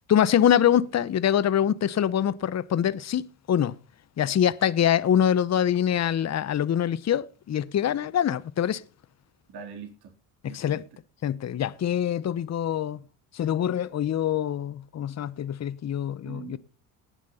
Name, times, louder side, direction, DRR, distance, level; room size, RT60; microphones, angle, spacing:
voice 1, 0.1-3.8 4.2-8.8 10.4-10.8 11.2-13.0 13.3-16.6, left 9 dB, 35° left, 0.9 m, -24 dB
voice 2, 9.5-10.1 10.4-10.8 16.2-16.6, right 6 dB, 60° right, 3.8 m, -42 dB
19.5 x 7.4 x 4.2 m
hypercardioid pair, 70°, 44 cm